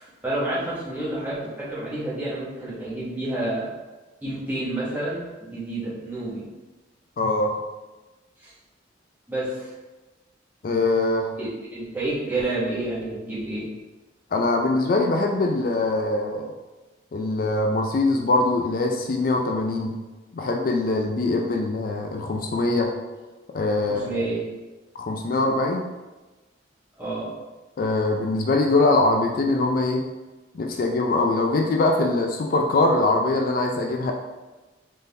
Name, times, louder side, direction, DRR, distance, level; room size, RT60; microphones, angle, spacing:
voice 1, 0.0-3.7 4.2-6.4 8.4-8.5 9.3-9.7 11.4-13.6 23.9-24.5 27.0-27.3, right 2 dB, 10° right, -10 dB, 1.4 m, -29 dB
voice 2, 7.2-7.5 10.6-11.3 14.3-16.5 17.1-20.0 20.3-22.9 23.5-24.2 25.0-25.8 27.8-30.0 30.5-34.1, left 2 dB, 45° left, 2 dB, 0.3 m, -22 dB
4.0 x 3.7 x 2.6 m, 1.1 s
head